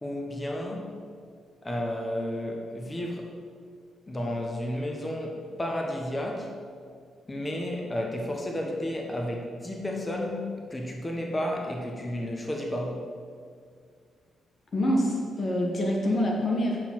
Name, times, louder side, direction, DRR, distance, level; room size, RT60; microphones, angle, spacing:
voice 1, 0.0-1.0 1.6-3.3 4.1-6.5 7.3-13.0, left 1 dB, 25° left, 0 dB, 1.3 m, -32 dB
voice 2, 14.7-16.8, left 1 dB, 50° left, -1 dB, 1.3 m, -26 dB
6.7 x 5.8 x 6.0 m, 2.1 s
hypercardioid pair, 40°, 0 cm